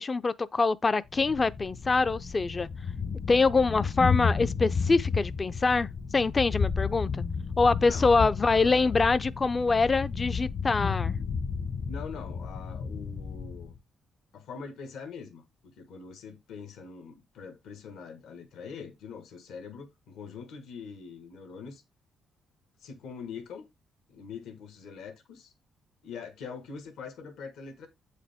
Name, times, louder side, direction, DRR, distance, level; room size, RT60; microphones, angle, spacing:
voice 1, 0.0-2.7 3.3-5.9 6.1-7.2 7.6-11.1, left 4 dB, 30° left, 0.4 m, -25 dB
Thunder, 1.1-13.8, left 5 dB, 55° left, 1.1 m, -32 dB
voice 2, 7.8-9.0 11.9-13.7 14.3-21.8 22.8-23.6 24.1-25.5 26.0-27.9, left 5 dB, 80° left, 1.4 m, -43 dB
8.0 x 5.0 x 3.5 m
cardioid pair, 90°, 0 cm